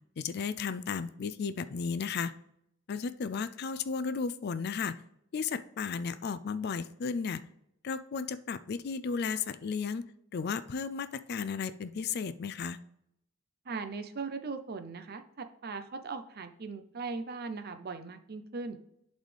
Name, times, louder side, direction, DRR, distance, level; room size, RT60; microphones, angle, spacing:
voice 1, 0.2-2.3 2.9-4.9 5.3-7.4 7.8-10.1 10.3-12.8, left 5 dB, 50° left, 13 dB, 0.4 m, -34 dB
voice 2, 13.7-18.8, right 4 dB, 50° right, 9 dB, 0.6 m, -39 dB
11.5 x 4.1 x 3.3 m, 0.75 s
head